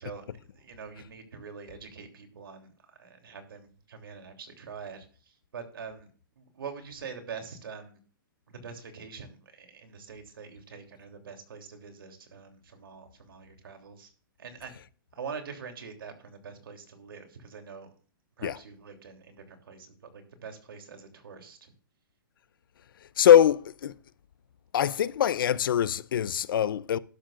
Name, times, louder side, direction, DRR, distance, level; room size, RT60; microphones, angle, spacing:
voice 1, 0.0-6.1 6.4-8.0 8.5-14.1 14.4-14.7 15.1-17.9 18.4-21.7, right 6 dB, 85° right, 3.1 m, -44 dB
voice 2, 23.2-23.9 24.7-27.0, left 10 dB, 70° left, 0.6 m, -22 dB
12.0 x 11.5 x 2.5 m
hypercardioid pair, 155°, 12 cm